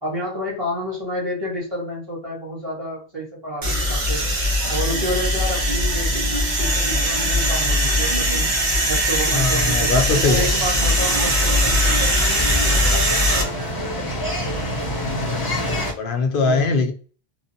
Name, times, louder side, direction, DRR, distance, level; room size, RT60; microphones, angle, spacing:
voice 1, 0.0-4.3 4.7-8.5 8.9-14.1 16.4-16.8, equal, 25° right, 1.1 m, -30 dB
sound 1, 3.6-13.4, equal, 50° right, 0.9 m, -20 dB
voice 2, 9.3-10.5 16.0-16.9, left 4 dB, 65° left, 0.7 m, -20 dB
sound 2, 10.1-15.9, left 1 dB, 25° left, 0.6 m, -27 dB
3.0 x 2.0 x 2.6 m
omnidirectional pair, 1.0 m